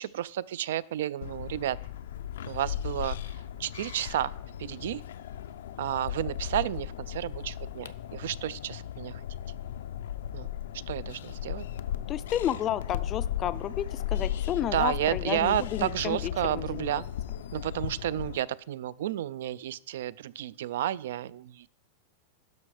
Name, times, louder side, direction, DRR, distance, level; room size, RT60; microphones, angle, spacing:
voice 1, 0.0-1.8 2.5-3.3 3.6-4.3 4.6-5.0 5.8-9.2 10.3-10.5 10.9-11.6 14.7-17.0 17.5-21.7, right 12 dB, 70° right, 21 dB, 0.3 m, -31 dB
sound 1, 1.2-18.4, left 10 dB, 85° left, 0.5 m, -36 dB
voice 2, 12.1-17.0, left 11 dB, 25° left, 15 dB, 0.3 m, -32 dB
12.0 x 5.3 x 4.9 m, 0.67 s
supercardioid pair, 170°, 0 cm